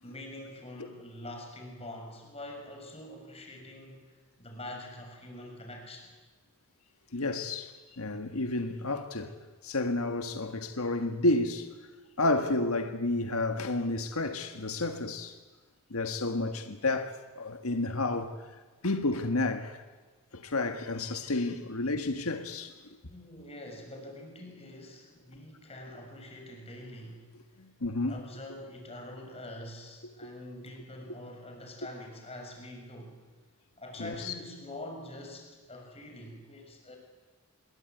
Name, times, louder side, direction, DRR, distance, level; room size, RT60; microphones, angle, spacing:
voice 1, 0.0-6.1 23.1-27.3 28.1-33.2 33.8-37.0, left 1 dB, 30° left, 6.5 m, -45 dB
voice 2, 7.1-9.3 9.6-11.7 12.2-15.4 15.9-18.4 18.8-19.8 20.3-22.8 27.6-28.2 34.0-34.3, left 2 dB, 85° left, 1.6 m, -31 dB
26.5 x 22.5 x 9.3 m
head